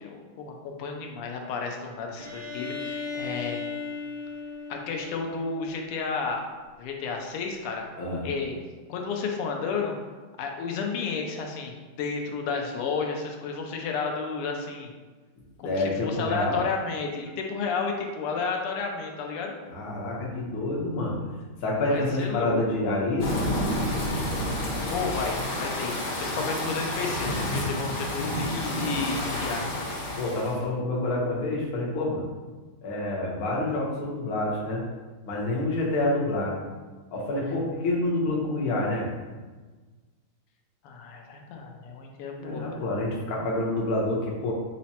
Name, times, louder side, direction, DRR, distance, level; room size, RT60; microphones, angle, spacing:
voice 1, 0.0-3.6 4.7-6.5 6.8-7.9 8.2-8.5 8.9-9.9 10.4-14.9 15.6-19.5 21.9-22.6 24.9-29.7 40.8-42.8, left 5 dB, 90° left, 2 dB, 1.6 m, -32 dB
Bowed string instrument, 2.2-5.9, left 4 dB, 45° right, 1.3 m, -36 dB
voice 2, 8.0-8.3 15.6-16.6 19.7-21.1 21.6-23.3 27.0-27.4 30.2-32.2 32.8-34.8 35.3-36.6 37.1-39.1 42.4-44.5, left 2 dB, 55° left, -3 dB, 1.2 m, -28 dB
sound 1, 23.2-30.6, left 1 dB, 70° left, 2.0 m, -29 dB
5.8 x 2.1 x 4.1 m, 1.3 s
omnidirectional pair, 2.4 m